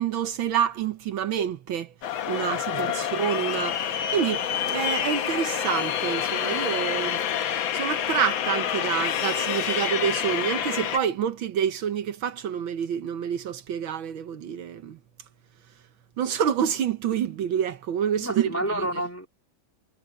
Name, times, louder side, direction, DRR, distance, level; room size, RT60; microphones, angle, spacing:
voice 1, 0.0-1.9 2.3-7.2 7.7-15.0 16.2-18.9, right 8 dB, 75° right, 1.8 m, -28 dB
sound 1, 2.0-11.0, left 9 dB, 75° left, 1.8 m, -27 dB
voice 2, 18.2-19.3, right 1 dB, 5° left, 2.2 m, -29 dB
omnidirectional pair, 2.2 m